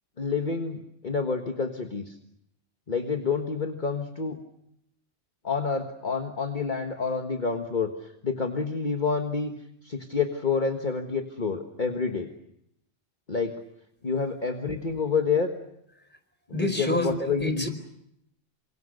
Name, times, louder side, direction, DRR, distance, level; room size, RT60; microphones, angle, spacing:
voice 1, 0.2-2.2 2.9-4.4 5.4-7.9 8.2-9.5 9.8-12.3 13.3-13.5 14.0-15.5 16.5-17.7, left 5 dB, 40° left, 4 dB, 1.7 m, -28 dB
voice 2, 16.5-17.7, left 1 dB, 10° left, 7 dB, 4.6 m, -28 dB
28.5 x 26.0 x 6.6 m, 0.77 s
omnidirectional pair, 1.2 m